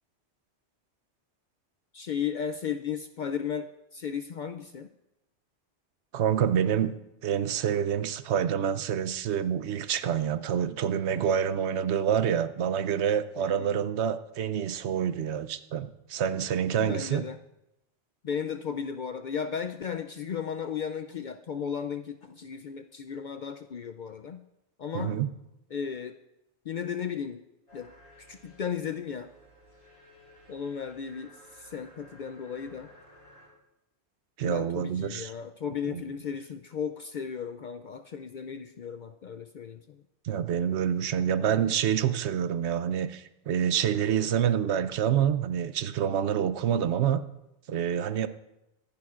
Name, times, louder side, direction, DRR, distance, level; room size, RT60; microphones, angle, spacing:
voice 1, 1.9-4.9 13.4-13.9 16.8-17.4 18.2-24.4 24.8-25.2 25.7-26.2 26.7-27.4 27.7-27.9 28.2-29.3 30.5-32.9 34.4-40.0, left 7 dB, 60° left, 8 dB, 0.5 m, -35 dB
voice 2, 6.1-7.0 7.2-17.2 24.9-25.3 34.4-35.3 35.9-36.0 40.2-47.2 47.7-48.3, right 9 dB, 75° right, 13 dB, 0.9 m, -27 dB
sound 1, 27.7-33.5, equal, 75° left, 4.1 m, -55 dB
24.0 x 10.5 x 2.5 m, 0.89 s
omnidirectional pair, 1.2 m